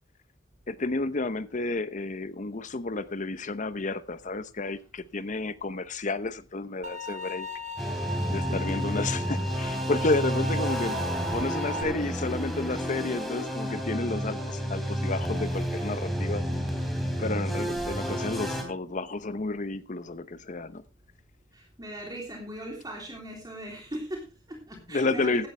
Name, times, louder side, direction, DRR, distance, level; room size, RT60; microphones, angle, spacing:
voice 1, 0.7-7.5 8.3-16.4 17.2-20.8 24.9-25.5, left 3 dB, 40° left, 0.8 m, -31 dB
sound 1, 6.8-11.8, equal, 40° right, 1.6 m, -37 dB
sound 2, 7.8-18.6, equal, ahead, 3.2 m, -30 dB
voice 2, 8.3-9.0 13.2-13.3 21.5-25.5, right 1 dB, 20° right, 3.4 m, -39 dB
15.5 x 12.0 x 3.4 m
head